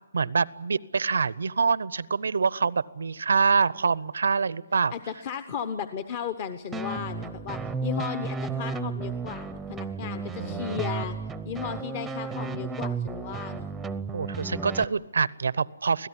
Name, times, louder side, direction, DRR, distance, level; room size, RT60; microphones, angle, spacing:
voice 1, 0.1-4.9 10.4-10.8 14.1-16.1, right 5 dB, 85° right, 21 dB, 0.7 m, -25 dB
voice 2, 4.9-11.2 11.4-13.7, left 7 dB, 35° left, 11 dB, 1.0 m, -35 dB
sound 1, 6.7-14.8, right 4 dB, 5° right, 0.7 m, -33 dB
25.0 x 17.0 x 9.9 m, 1.1 s
hypercardioid pair, 160°, 0 cm